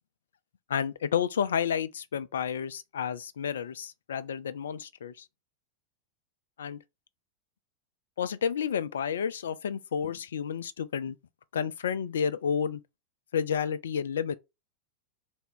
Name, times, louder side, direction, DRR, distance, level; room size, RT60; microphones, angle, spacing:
voice 1, 0.7-5.3 6.6-6.8 8.2-11.2 11.5-12.8 13.3-14.4, left 7 dB, 65° left, 0.3 m, -30 dB
3.4 x 2.0 x 3.6 m
figure-of-eight pair, 90°, 0 cm